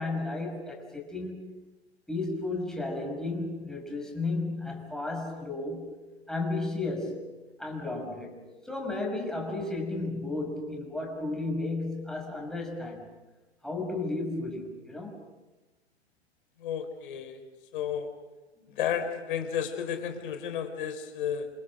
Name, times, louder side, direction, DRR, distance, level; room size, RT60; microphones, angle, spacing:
voice 1, 0.0-1.6 2.1-5.9 6.3-7.3 7.6-13.1 13.6-15.2, left 2 dB, ahead, 1 dB, 6.0 m, -33 dB
voice 2, 16.6-17.4 17.7-18.2 18.7-21.5, left 8 dB, 50° left, 7 dB, 4.3 m, -32 dB
29.0 x 27.0 x 6.3 m, 1.2 s
figure-of-eight pair, 110°, 33 cm